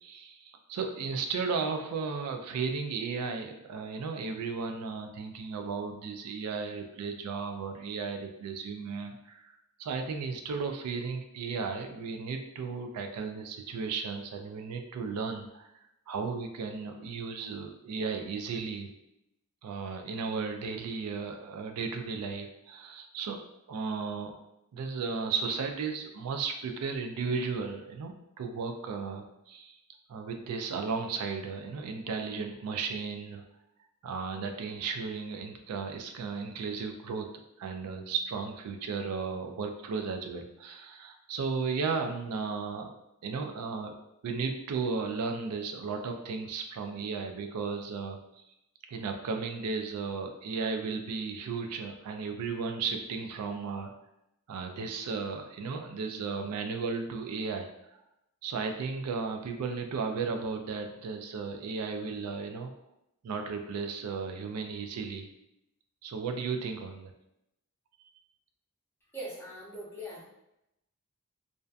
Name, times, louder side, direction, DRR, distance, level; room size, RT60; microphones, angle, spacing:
voice 1, 0.0-15.7 16.1-18.9 19.6-23.4 23.7-24.4 24.7-29.8 30.1-33.4 34.0-37.3 37.6-42.9 43.2-43.9 44.2-48.4 48.9-53.9 54.5-57.7 58.4-62.7 63.2-65.3 66.0-67.1, right 5 dB, 85° right, 6 dB, 0.3 m, -35 dB
voice 2, 69.1-70.2, equal, 10° left, -7 dB, 0.8 m, -41 dB
2.5 x 2.2 x 2.4 m, 0.84 s
head